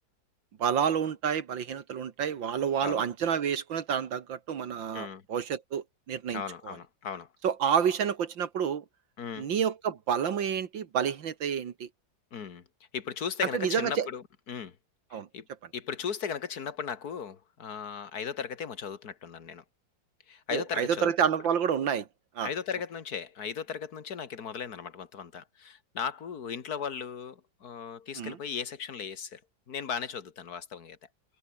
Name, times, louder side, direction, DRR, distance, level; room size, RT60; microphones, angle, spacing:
voice 1, 0.6-6.7 7.4-8.8 9.4-11.9 13.5-14.1 15.1-15.3 20.5-22.1 22.4-22.5 28.2-28.4, right 8 dB, 75° right, 2.2 m, -29 dB
voice 2, 6.3-7.3 9.2-9.5 12.3-12.6 12.9-14.8 15.1-15.5 15.7-19.6 20.3-21.1 22.4-29.4 29.7-31.0, left 7 dB, 55° left, 2.2 m, -37 dB
omnidirectional pair, 2.1 m